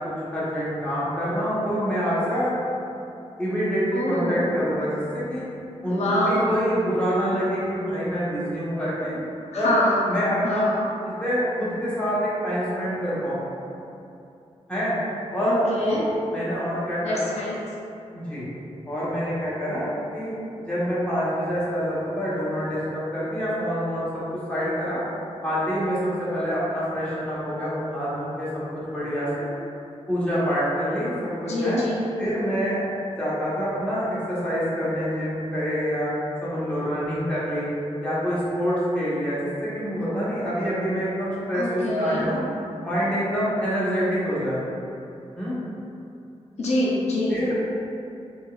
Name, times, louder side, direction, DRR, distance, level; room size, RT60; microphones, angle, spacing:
voice 1, 0.0-2.5 3.4-5.4 5.8-9.2 9.5-9.7 10.1-10.7 11.0-13.4 14.7-14.9 15.3-16.0 16.3-17.3 18.1-18.5 18.9-20.3 20.6-25.0 25.4-28.5 28.7-29.5 30.1-31.8 32.2-32.8 33.2-36.1 36.4-37.7 38.0-42.4 42.8-44.6 45.3-45.6 47.3-47.6, equal, 10° left, -10 dB, 0.9 m, -26 dB
voice 2, 3.9-4.7 5.9-6.4 9.5-10.0 10.4-10.8 15.4-16.0 17.0-17.6 31.5-32.0 41.5-42.3 46.6-47.4, left 1 dB, 70° left, -5 dB, 0.5 m, -25 dB
3.7 x 2.3 x 2.3 m, 2.7 s
wide cardioid pair, 115°, 12 cm